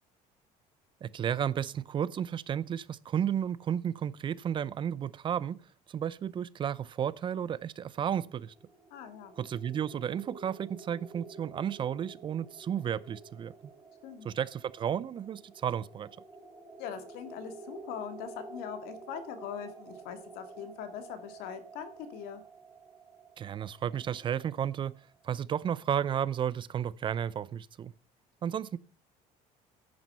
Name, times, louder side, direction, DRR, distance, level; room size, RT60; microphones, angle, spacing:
voice 1, 1.0-5.6 5.9-8.5 9.4-13.5 14.2-16.1 23.4-24.9 25.2-27.9 28.4-28.8, right 9 dB, 30° right, 0.5 m, -33 dB
sound 1, 8.3-24.9, right 3 dB, 10° right, 2.0 m, -50 dB
voice 2, 8.9-9.3 14.0-14.3 16.8-22.4, left 8 dB, 85° left, 2.1 m, -41 dB
10.5 x 9.1 x 5.6 m
cardioid pair, 155°, 15 cm